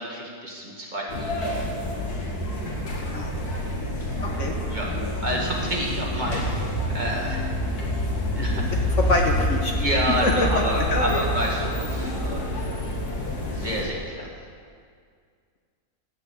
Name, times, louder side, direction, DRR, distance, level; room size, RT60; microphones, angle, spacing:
voice 1, 0.0-1.6 4.0-4.1 4.7-4.9 5.2-7.5 8.3-8.6 9.7-12.7 13.5-14.3, right 1 dB, 30° right, -3 dB, 2.0 m, -29 dB
sound 1, 1.1-13.8, left 1 dB, 75° left, 2.4 m, -27 dB
voice 2, 9.0-9.7 10.2-10.6 10.9-11.3, left 2 dB, 55° left, 1 dB, 1.4 m, -24 dB
16.0 x 6.1 x 8.1 m, 2.1 s
omnidirectional pair, 1.6 m